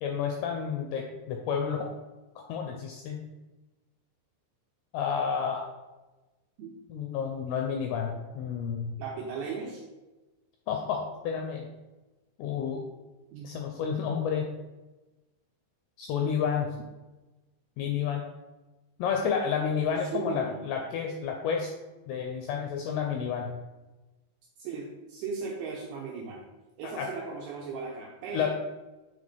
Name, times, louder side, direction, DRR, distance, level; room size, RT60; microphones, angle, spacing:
voice 1, 0.0-1.9 2.5-3.2 4.9-5.7 6.9-9.0 10.7-11.7 12.4-12.8 13.4-14.5 16.0-16.7 17.8-18.2 19.0-21.7 22.1-23.5 26.8-27.1 28.3-28.5, left 7 dB, 85° left, 2 dB, 2.3 m, -30 dB
voice 2, 9.0-9.8 13.3-13.6 20.1-20.7 24.6-26.5 26.8-28.5, right 5 dB, 85° right, -2 dB, 2.2 m, -37 dB
8.8 x 3.9 x 3.4 m, 1.1 s
omnidirectional pair, 5.2 m